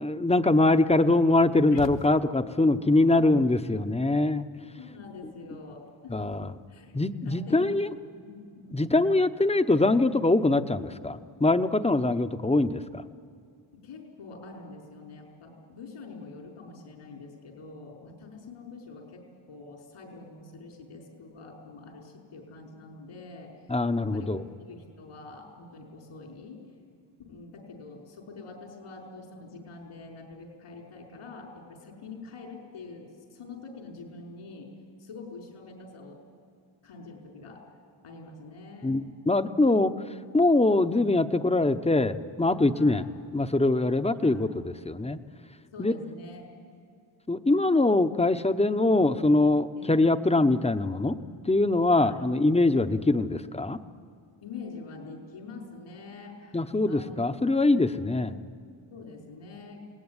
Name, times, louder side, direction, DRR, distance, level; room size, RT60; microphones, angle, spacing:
voice 1, 0.0-4.5 6.1-6.5 6.9-7.9 8.7-13.0 23.7-24.4 38.8-39.9 40.3-43.0 43.3-45.2 45.8-45.9 47.3-51.2 51.4-53.8 56.5-58.3, left 2 dB, 15° left, 10 dB, 0.9 m, -23 dB
sound 1, 1.7-2.7, left 5 dB, 60° left, 1.3 m, -41 dB
voice 2, 4.8-7.0 7.2-7.7 8.2-9.0 13.8-19.2 19.5-26.6 27.3-34.7 35.0-36.2 36.8-37.6 38.0-39.0 42.7-43.1 44.2-44.6 45.7-46.5 49.8-50.1 51.9-52.3 54.4-57.5 57.9-58.4 58.9-59.8, left 3 dB, 85° left, 0 dB, 5.2 m, -45 dB
28.5 x 19.0 x 9.8 m, 2.4 s
cardioid pair, 105°, 49 cm